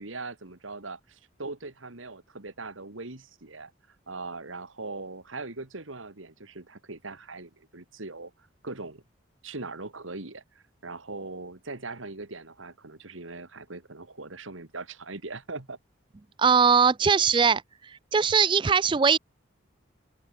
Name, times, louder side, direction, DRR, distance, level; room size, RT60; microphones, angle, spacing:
voice 1, 0.0-3.7 4.1-8.3 8.6-9.0 9.4-15.8, right 3 dB, 85° right, 2.3 m, -40 dB
voice 2, 16.4-19.2, right 6 dB, 25° right, 0.3 m, -21 dB
open air
head